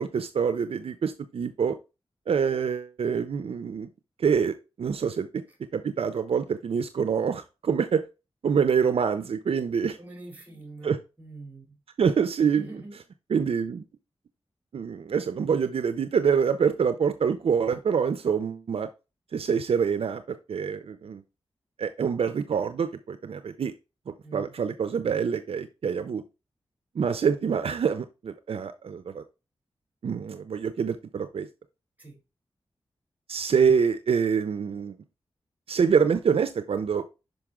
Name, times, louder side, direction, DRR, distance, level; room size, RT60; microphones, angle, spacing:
voice 1, 0.0-1.7 2.3-3.9 4.2-5.3 5.7-8.0 8.4-10.0 10.8-11.0 12.0-12.6 13.3-13.8 14.7-18.9 19.3-20.2 20.5-21.2 21.8-23.7 24.1-26.2 27.0-29.2 30.0-31.5 33.3-34.9 35.7-37.0, right 6 dB, 75° right, 0.5 m, -26 dB
voice 2, 10.0-11.6 12.4-13.0 24.2-24.5 32.0-32.2, right 2 dB, 20° right, 2.7 m, -44 dB
5.9 x 5.2 x 3.6 m
wide cardioid pair, 110°, 10 cm